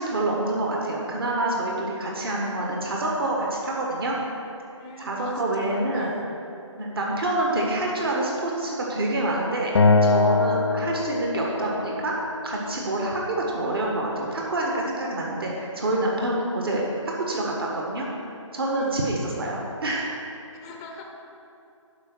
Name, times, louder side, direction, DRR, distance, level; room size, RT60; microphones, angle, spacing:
voice 1, 0.0-4.1 5.0-6.1 6.8-9.7 10.0-12.1 12.4-16.8 17.3-18.1 18.5-20.1, right 1 dB, 50° right, -2 dB, 1.5 m, -27 dB
voice 2, 4.8-6.2 18.7-19.0 20.6-21.0, left 3 dB, 10° left, 1 dB, 0.6 m, -41 dB
Acoustic guitar, 9.8-13.0, left 3 dB, 60° left, 0.6 m, -23 dB
11.5 x 5.2 x 6.1 m, 2.7 s
figure-of-eight pair, 160°, 16 cm